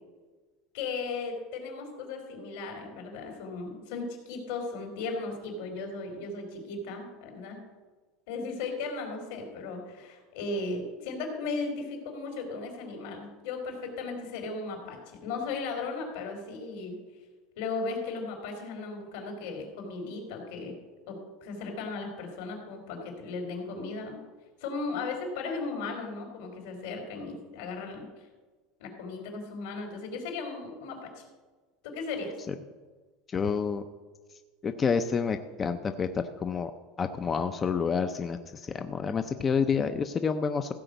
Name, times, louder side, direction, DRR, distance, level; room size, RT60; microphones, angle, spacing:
voice 1, 0.7-7.6 8.3-17.0 17.6-20.8 21.1-21.2 21.4-24.2 24.6-28.1 28.8-31.2 31.8-32.4, left 3 dB, 75° left, 3 dB, 3.5 m, -36 dB
voice 2, 33.3-33.9 34.6-36.7 37.0-40.7, left 6 dB, 20° left, 9 dB, 0.4 m, -29 dB
15.0 x 5.1 x 7.9 m, 1.3 s
cardioid pair, 165°, 0 cm